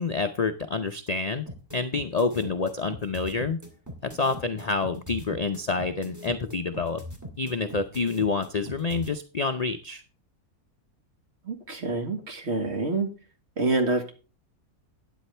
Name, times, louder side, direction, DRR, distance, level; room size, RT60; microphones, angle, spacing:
voice 1, 0.0-1.4 1.7-3.6 4.0-7.0 7.4-10.0, left 4 dB, 45° left, 7 dB, 0.5 m, -28 dB
sound 1, 1.5-9.1, equal, 10° right, 2.3 m, -40 dB
voice 2, 11.4-13.1 13.6-14.1, right 3 dB, 45° right, 5 dB, 1.9 m, -27 dB
12.5 x 9.3 x 3.3 m, 0.34 s
omnidirectional pair, 1.6 m